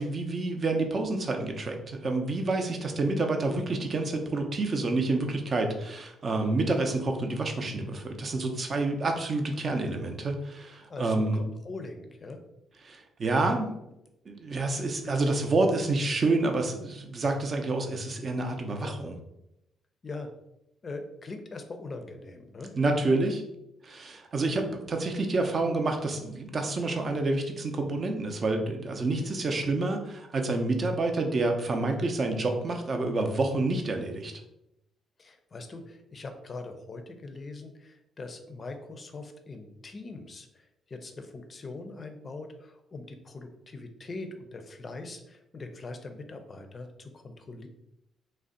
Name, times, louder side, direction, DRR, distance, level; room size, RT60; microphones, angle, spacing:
voice 1, 0.0-11.4 12.8-13.7 14.3-19.1 22.7-23.4 23.8-34.3, right 2 dB, 40° right, 4 dB, 0.5 m, -28 dB
voice 2, 10.9-12.4 18.8-19.0 20.0-20.3 20.8-22.7 25.0-25.1 35.2-40.5 40.9-47.7, left 3 dB, 35° left, 7 dB, 0.4 m, -42 dB
2.5 x 2.1 x 3.7 m, 0.85 s
cardioid pair, 90°, 0 cm